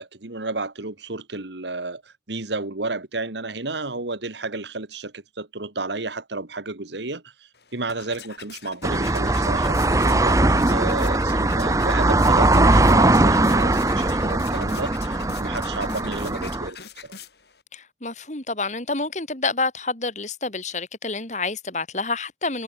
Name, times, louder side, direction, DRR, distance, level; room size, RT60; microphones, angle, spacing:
voice 1, 0.0-16.8 17.0-17.1, right 3 dB, 80° right, 2.0 m, -32 dB
sound 1, 7.5-17.6, left 6 dB, 70° left, 7.1 m, -42 dB
sound 2, 8.8-16.7, right 2 dB, 20° right, 0.8 m, -20 dB
voice 2, 17.7-22.6, left 3 dB, 40° left, 3.1 m, -28 dB
head